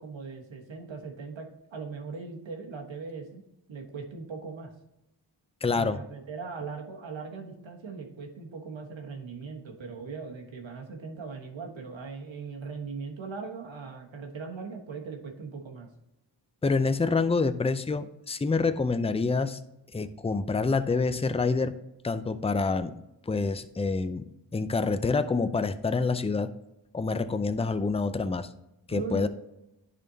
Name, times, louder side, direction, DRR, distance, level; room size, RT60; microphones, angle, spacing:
voice 1, 0.0-3.4 3.7-4.7 5.7-15.9 28.9-29.3, right 5 dB, 75° right, 2 dB, 1.4 m, -39 dB
voice 2, 5.6-6.0 16.6-19.6 19.9-21.8 22.0-23.0 23.3-24.2 24.5-26.5 26.9-28.5 28.9-29.3, left 4 dB, 15° left, 11 dB, 0.5 m, -27 dB
10.5 x 4.3 x 2.8 m, 0.89 s
cardioid pair, 45°, 47 cm